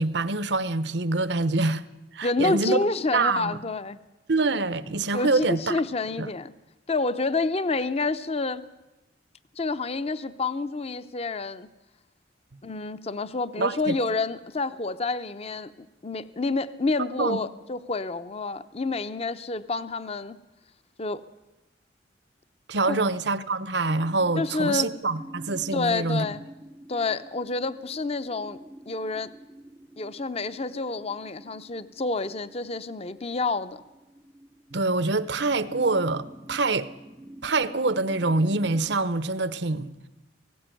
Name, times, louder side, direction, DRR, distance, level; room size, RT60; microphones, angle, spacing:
voice 1, 0.0-1.8 2.1-2.8 3.1-3.6 4.3-5.8 6.2-6.3 13.6-14.0 17.2-17.4 22.7-26.3 34.7-36.9 37.4-39.9, right 3 dB, 65° right, 0.8 m, -25 dB
voice 2, 2.2-4.0 5.1-6.5 6.9-8.6 9.6-11.7 12.6-15.7 16.0-20.4 21.0-21.2 22.9-23.0 24.4-24.9 25.7-26.4 26.9-28.6 28.9-29.3 30.0-33.8, left 3 dB, 35° left, 0.7 m, -28 dB
sound 1, 23.9-39.0, right 1 dB, 10° right, 0.7 m, -47 dB
18.5 x 16.0 x 9.1 m
head